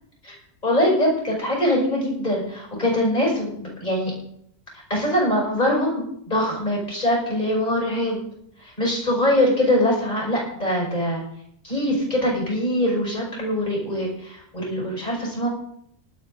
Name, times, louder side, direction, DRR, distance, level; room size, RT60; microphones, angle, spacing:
voice 1, 0.6-4.1 4.9-8.3 8.6-11.2 11.6-15.5, left 1 dB, 30° left, -2 dB, 5.8 m, -23 dB
18.5 x 12.0 x 4.0 m, 0.73 s
omnidirectional pair, 1.3 m